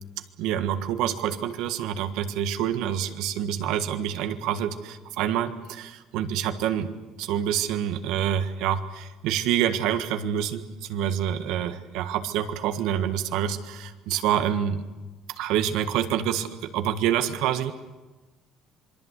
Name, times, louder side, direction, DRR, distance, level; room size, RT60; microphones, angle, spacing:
voice 1, 0.4-14.8 15.4-17.7, right 10 dB, 75° right, 8 dB, 1.6 m, -27 dB
26.5 x 22.5 x 8.2 m, 1.2 s
cardioid pair, 165°, 0 cm